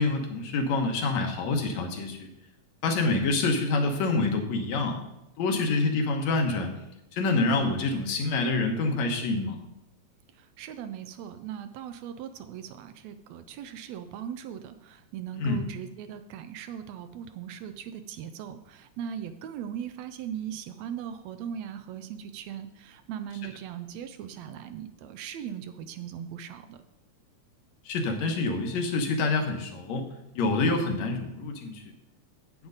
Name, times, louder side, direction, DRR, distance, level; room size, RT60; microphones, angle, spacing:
voice 1, 0.0-2.3 2.8-5.0 5.4-6.7 7.1-9.6 15.4-15.6 27.9-30.1 30.4-31.8, left 3 dB, 75° left, 3 dB, 2.3 m, -26 dB
voice 2, 10.4-26.8, right 9 dB, 80° right, 9 dB, 1.8 m, -39 dB
9.6 x 8.7 x 3.9 m, 0.87 s
omnidirectional pair, 3.3 m